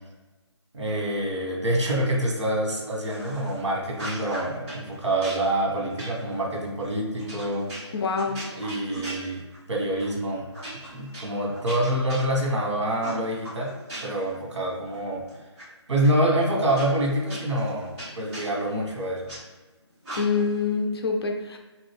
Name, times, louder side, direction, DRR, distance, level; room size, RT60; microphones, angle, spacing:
voice 1, 0.7-7.7 8.6-9.4 9.7-10.5 10.9-13.8 14.0-15.3 15.9-19.3, right 1 dB, 70° right, -2 dB, 1.2 m, -26 dB
sound 1, 3.1-3.6 3.9-4.8 5.2-9.7 10.0-10.2 10.5-12.6 13.0-14.3 14.7-15.6 16.0-16.1 16.7-19.4 20.0-20.6, right 1 dB, 15° right, 1.1 m, -39 dB
voice 2, 7.9-8.4 20.2-21.6, left 5 dB, 55° left, 3 dB, 0.6 m, -25 dB
3.0 x 2.6 x 3.3 m, 1.2 s
hypercardioid pair, 160°, 15 cm